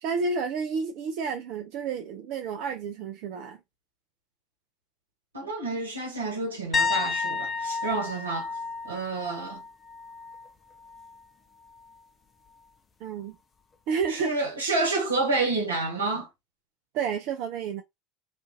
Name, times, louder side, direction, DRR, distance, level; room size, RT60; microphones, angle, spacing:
voice 1, 0.0-3.6 13.0-13.4 13.9-14.3 16.9-17.8, right 5 dB, 60° right, 0.4 m, -30 dB
voice 2, 5.3-8.5 8.8-9.6 14.1-16.3, right 3 dB, 85° right, 1.0 m, -29 dB
sound 1, 6.7-10.5 10.8-11.2 14.0-14.1, left 4 dB, 25° left, 0.5 m, -31 dB
2.5 x 2.4 x 2.6 m
hypercardioid pair, 75°, 0 cm